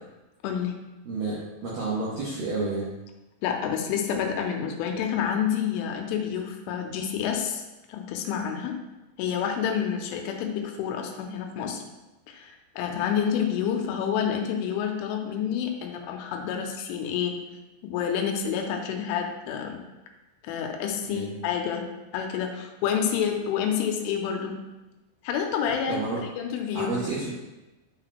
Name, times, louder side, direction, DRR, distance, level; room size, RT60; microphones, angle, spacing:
voice 1, 0.4-0.8 3.4-7.6 7.9-8.8 9.2-11.8 12.3-17.4 17.8-19.8 20.4-21.9 22.1-24.6 25.2-26.0 26.4-27.0, left 8 dB, 85° left, 2 dB, 3.2 m, -28 dB
voice 2, 1.1-2.9 21.1-21.3 25.9-26.2 26.7-27.3, right 3 dB, 80° right, -7 dB, 2.0 m, -30 dB
10.5 x 5.8 x 2.2 m, 1.1 s
omnidirectional pair, 5.6 m